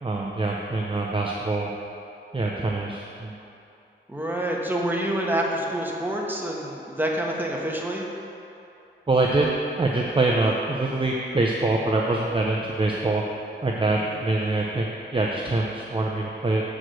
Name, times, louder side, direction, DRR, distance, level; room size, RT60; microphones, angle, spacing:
voice 1, 0.0-1.7 2.3-3.3 9.1-9.5 9.8-13.2 13.6-16.6, right 2 dB, 25° right, -1 dB, 0.6 m, -24 dB
voice 2, 4.1-8.0 13.9-14.1, right 1 dB, 10° right, -2 dB, 1.2 m, -27 dB
7.4 x 4.9 x 6.3 m, 2.8 s
wide cardioid pair, 70°, 20 cm